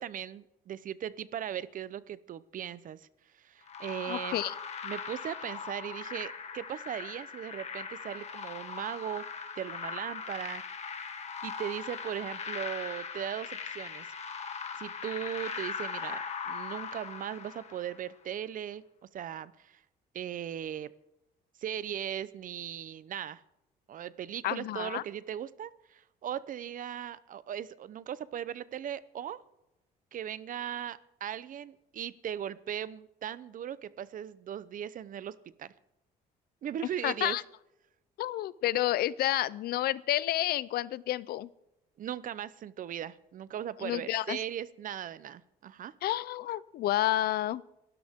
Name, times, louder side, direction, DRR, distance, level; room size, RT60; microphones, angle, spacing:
voice 1, 0.0-3.1 3.3-4.4 4.8-9.2 9.6-10.6 11.4-14.1 14.8-18.8 19.1-19.8 20.1-20.9 21.6-23.4 23.9-29.4 30.1-35.7 36.6-37.4 42.0-45.9, right 10 dB, 55° right, 17 dB, 0.8 m, -38 dB
sound 1, 3.7-18.0, left 5 dB, 40° left, 1.9 m, -40 dB
voice 2, 4.1-4.5 24.4-25.0 37.0-37.4 38.2-41.5 43.8-44.4 46.0-47.6, left 14 dB, 70° left, 20 dB, 0.6 m, -30 dB
27.5 x 13.0 x 3.7 m, 0.89 s
cardioid pair, 100°, 17 cm